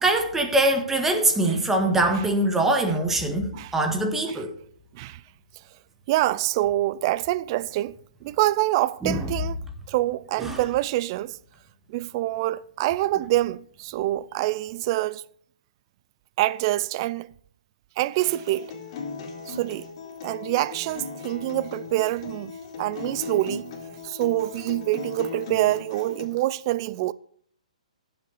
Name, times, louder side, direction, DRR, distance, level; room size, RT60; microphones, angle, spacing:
voice 1, 0.0-4.5 9.0-9.3 10.4-10.6, right 2 dB, 10° right, 1.6 m, -23 dB
voice 2, 6.1-8.0 8.2-9.6 9.9-11.4 11.9-15.2 16.4-17.3 18.0-18.7 19.5-19.9 20.2-23.7 24.0-27.1, right 16 dB, 35° right, 0.4 m, -26 dB
Acoustic guitar, 18.2-26.2, left 5 dB, 45° left, 4.2 m, -38 dB
15.5 x 7.6 x 4.0 m
hypercardioid pair, 130°, 4 cm